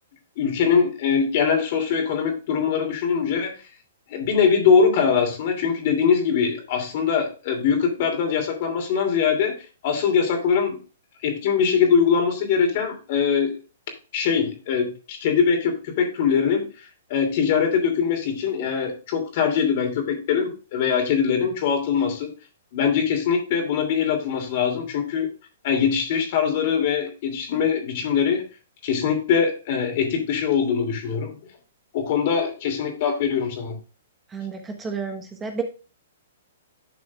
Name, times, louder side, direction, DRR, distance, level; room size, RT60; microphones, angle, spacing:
voice 1, 0.4-3.5 4.1-9.5 9.8-10.8 11.2-13.6 14.1-16.7 17.1-22.3 22.7-25.3 25.6-28.4 28.8-31.3 31.9-33.8, left 6 dB, 50° left, 4 dB, 2.8 m, -22 dB
voice 2, 34.3-35.6, right 5 dB, 15° right, 5 dB, 1.3 m, -31 dB
11.5 x 6.2 x 2.4 m, 0.33 s
hypercardioid pair, 130°, 0 cm